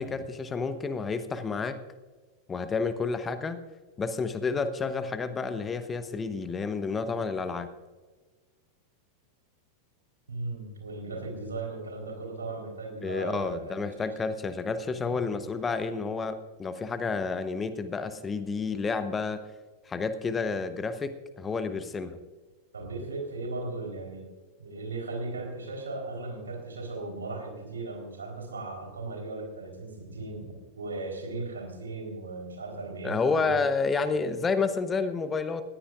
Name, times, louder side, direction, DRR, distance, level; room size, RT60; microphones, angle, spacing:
voice 1, 0.0-1.8 2.5-3.6 4.0-7.7 13.0-19.4 19.9-22.2 33.0-35.6, left 4 dB, 20° left, 11 dB, 0.9 m, -30 dB
voice 2, 10.3-14.1 15.1-15.2 22.7-24.3 24.6-33.6, right 3 dB, 70° right, 2 dB, 3.9 m, -37 dB
20.0 x 15.0 x 2.5 m, 1.3 s
figure-of-eight pair, 90°, 0 cm